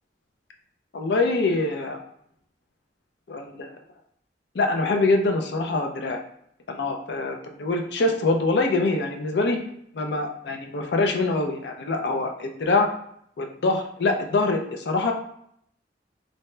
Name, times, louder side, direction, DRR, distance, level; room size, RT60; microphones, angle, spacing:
voice 1, 0.9-2.0 3.3-3.7 4.5-6.2 6.7-9.6 9.9-12.9 13.4-15.1, left 3 dB, 70° left, 3 dB, 0.4 m, -24 dB
2.7 x 2.1 x 3.1 m, 0.69 s
head